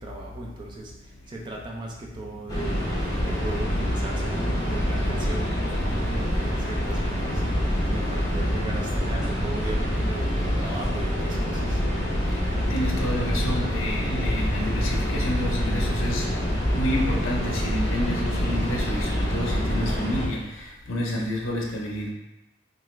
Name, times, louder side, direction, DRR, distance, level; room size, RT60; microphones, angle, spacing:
voice 1, 0.0-11.8, right 2 dB, 25° right, -1 dB, 0.4 m, -38 dB
sound 1, 2.5-20.3, equal, 15° left, 0.6 m, -26 dB
voice 2, 2.9-3.6 4.2-4.3 5.3-6.6 6.9-7.0 12.7-16.3 16.7-22.1, left 1 dB, 75° left, -1 dB, 0.6 m, -30 dB
3.1 x 2.4 x 3.1 m, 1.0 s
head